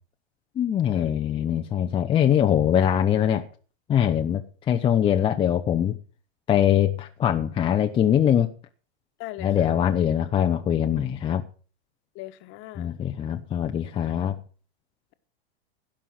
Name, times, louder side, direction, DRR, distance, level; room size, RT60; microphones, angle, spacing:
voice 1, 0.6-3.5 3.9-6.0 6.5-8.5 9.4-11.4 12.8-14.4, left 9 dB, 15° left, 0.6 m, -22 dB
voice 2, 9.2-9.7 12.1-13.0, left 16 dB, 35° left, 1.3 m, -40 dB
16.5 x 5.7 x 7.5 m
hypercardioid pair, 135°, 33 cm